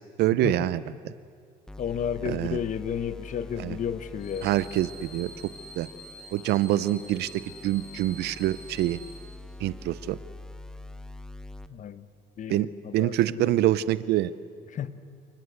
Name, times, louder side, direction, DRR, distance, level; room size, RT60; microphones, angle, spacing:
voice 1, 0.2-0.8 2.3-2.6 3.6-3.8 4.4-5.3 5.8-5.9 6.3-9.0 9.6-10.2 12.5-12.7 12.9-14.3, right 14 dB, 75° right, 16 dB, 0.7 m, -25 dB
sound 1, 1.7-11.7, left 2 dB, 5° left, 1.1 m, -45 dB
voice 2, 1.8-4.5 11.7-12.1 12.4-13.6 14.7-15.0, left 8 dB, 50° left, 13 dB, 1.2 m, -32 dB
sound 2, 4.2-9.2, left 1 dB, 70° left, 6.5 m, -47 dB
28.5 x 19.5 x 8.1 m, 2.2 s
cardioid pair, 110°, 17 cm